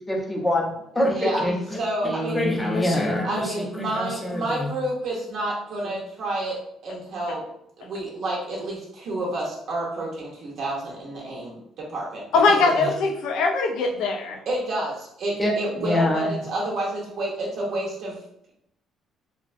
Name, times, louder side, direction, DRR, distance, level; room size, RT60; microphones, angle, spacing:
voice 1, 0.1-1.5 2.0-4.7 15.4-15.5 15.8-16.3, left 1 dB, 10° left, -1 dB, 0.5 m, -25 dB
voice 2, 1.7-2.4 3.2-6.6 6.8-7.4 7.8-12.2 12.5-12.7 14.5-18.2, right 1 dB, 60° right, -3 dB, 0.5 m, -29 dB
voice 3, 12.3-14.4, left 4 dB, 85° left, 3 dB, 0.3 m, -21 dB
2.5 x 2.0 x 2.4 m, 0.75 s
cardioid pair, 140°, 0 cm